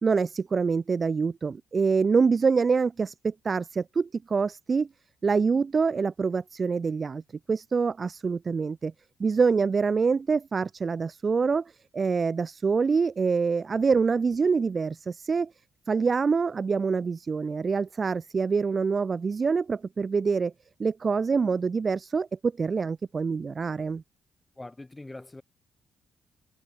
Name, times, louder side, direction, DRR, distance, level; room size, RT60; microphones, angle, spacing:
voice 1, 0.0-4.9 5.2-7.2 7.5-8.9 9.2-15.5 15.9-20.5 20.8-24.0, right 5 dB, 35° right, 0.4 m, -25 dB
voice 2, 24.6-25.4, left 2 dB, 15° left, 7.1 m, -42 dB
cardioid pair, 90°, 0 cm